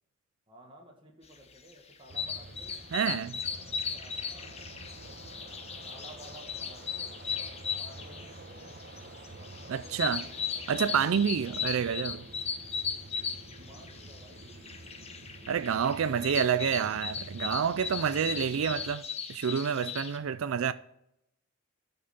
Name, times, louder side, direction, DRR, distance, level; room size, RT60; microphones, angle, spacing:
voice 1, 0.5-2.9 3.5-5.2 5.8-8.7 9.4-10.0 10.5-11.1 11.5-12.2 13.4-14.6, right 1 dB, 25° right, 1.9 m, -55 dB
sound 1, 1.5-20.2, left 6 dB, 30° left, 0.9 m, -38 dB
sound 2, 2.1-18.9, right 2 dB, 45° right, 1.0 m, -49 dB
voice 2, 2.9-3.4 9.7-10.2 10.7-12.2 15.5-19.0 19.3-20.7, right 7 dB, 75° right, 0.4 m, -28 dB
10.5 x 5.5 x 7.0 m
head